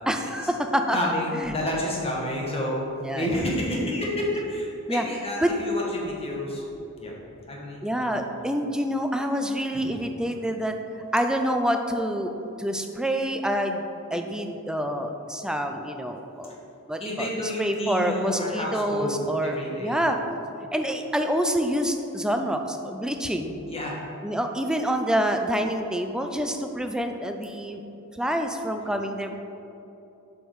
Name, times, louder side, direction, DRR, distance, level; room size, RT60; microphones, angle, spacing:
voice 1, 0.1-1.0 1.4-1.5 3.0-3.3 4.9-5.0 5.4-5.5 7.8-10.8 11.1-12.3 12.6-13.8 14.1-16.6 16.9-17.3 17.6-20.2 20.7-23.6 24.2-27.8 28.2-29.3, equal, 5° right, 5 dB, 0.4 m, -27 dB
voice 2, 0.9-2.9 3.1-6.6 7.0-7.1 7.5-8.2 9.7-9.9 17.0-20.0 23.7-24.0 28.8-28.9, left 1 dB, 25° left, -2 dB, 1.3 m, -30 dB
7.2 x 5.4 x 4.7 m, 2.9 s
head